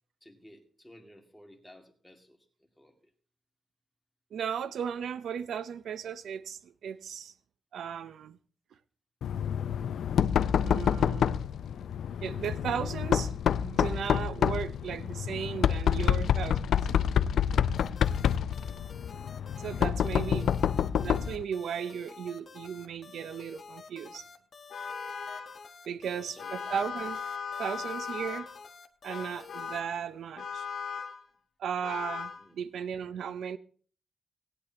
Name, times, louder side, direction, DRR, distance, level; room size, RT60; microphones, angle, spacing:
voice 1, 0.2-2.4 2.8-2.9 20.1-20.6 26.1-26.8 32.4-32.6, left 1 dB, 5° left, 2.3 m, -54 dB
voice 2, 4.3-7.3 7.7-8.4 10.6-11.4 12.2-16.8 19.6-20.5 20.8-24.3 25.9-27.2 27.6-28.5 29.0-30.6 31.6-33.6, right 8 dB, 80° right, 0.6 m, -36 dB
Knock, 9.2-21.4, left 8 dB, 80° left, 0.4 m, -28 dB
sound 1, 17.8-29.8, left 5 dB, 40° left, 1.1 m, -50 dB
Vehicle horn car horn honking, 24.7-25.6 26.4-28.6 29.1-29.9 30.4-31.2 31.8-32.4, left 6 dB, 60° left, 1.9 m, -38 dB
18.5 x 9.8 x 2.9 m
wide cardioid pair, 160°, 0 cm